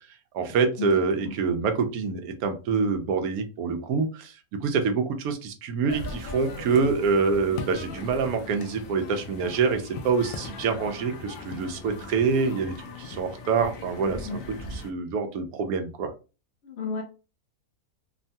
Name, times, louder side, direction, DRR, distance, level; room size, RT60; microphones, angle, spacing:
voice 1, 0.3-14.4 14.7-16.1, right 5 dB, 80° right, 6 dB, 1.1 m, -26 dB
sound 1, 5.9-14.9, left 3 dB, 90° left, 0.5 m, -39 dB
voice 2, 16.7-17.0, left 4 dB, 60° left, 1 dB, 0.8 m, -32 dB
3.0 x 2.2 x 2.6 m, 0.32 s
omnidirectional pair, 1.6 m